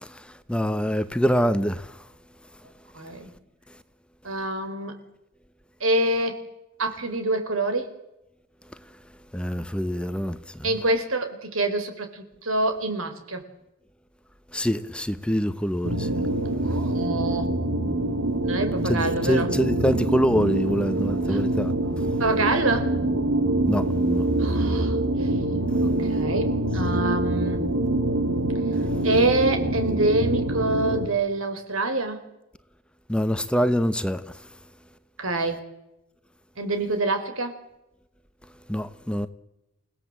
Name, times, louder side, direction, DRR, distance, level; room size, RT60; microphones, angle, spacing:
voice 1, 0.0-2.0 9.3-10.7 14.5-16.1 18.9-21.7 23.7-24.2 33.1-34.2 38.7-39.3, equal, 5° left, 0.9 m, -25 dB
voice 2, 2.9-3.3 4.2-4.9 5.8-6.4 6.8-7.9 10.6-13.4 16.6-17.5 18.4-19.5 21.3-21.4 22.2-22.9 24.4-25.3 25.8-27.7 29.0-32.2 35.2-35.6 36.6-37.5, right 2 dB, 85° right, 4.2 m, -26 dB
sound 1, 15.8-31.1, right 1 dB, 70° right, 2.1 m, -25 dB
29.0 x 17.0 x 7.5 m
head